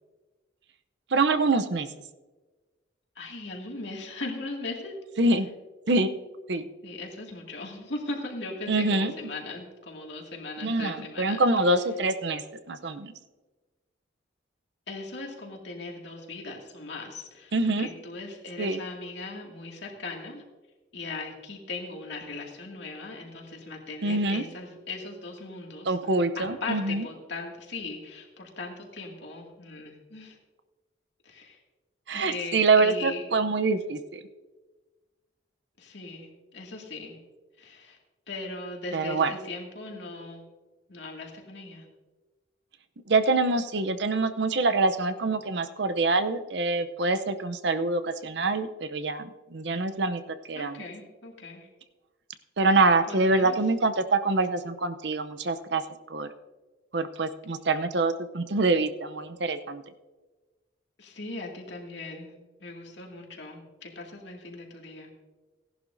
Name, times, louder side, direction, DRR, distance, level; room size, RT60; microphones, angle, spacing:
voice 1, 1.1-1.9 5.2-5.5 5.9-6.1 6.5-6.6 8.7-9.1 10.6-12.4 12.7-13.1 17.5-17.9 18.6-18.8 24.0-24.4 25.9-27.1 32.1-34.2 38.9-39.3 43.1-50.2 50.5-50.8 52.6-55.8 56.1-56.3 56.9-59.8, right 3 dB, 65° right, 10 dB, 0.7 m, -25 dB
voice 2, 3.2-4.9 6.8-11.5 14.9-17.5 17.8-20.4 20.9-25.9 26.3-30.4 31.3-31.6 32.1-33.2 35.8-37.2 37.6-38.0 38.3-40.4 40.9-41.9 50.6-51.7 53.1-53.6 61.0-62.3 62.6-65.1, left 3 dB, 65° left, 0 dB, 2.2 m, -38 dB
17.5 x 11.0 x 2.7 m, 1.2 s
head